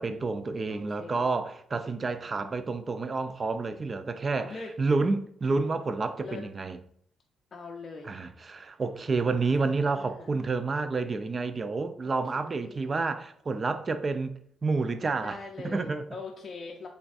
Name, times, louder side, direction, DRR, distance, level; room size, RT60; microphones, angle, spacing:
voice 1, 0.0-6.8 8.0-16.1, right 3 dB, 35° right, 0.3 m, -29 dB
voice 2, 0.7-1.3 4.3-4.7 5.5-5.8 6.2-6.4 7.5-8.1 9.6-10.3 12.0-12.9 15.1-16.9, left 4 dB, 45° left, 0.4 m, -43 dB
3.9 x 3.4 x 2.4 m
cardioid pair, 90°, 0 cm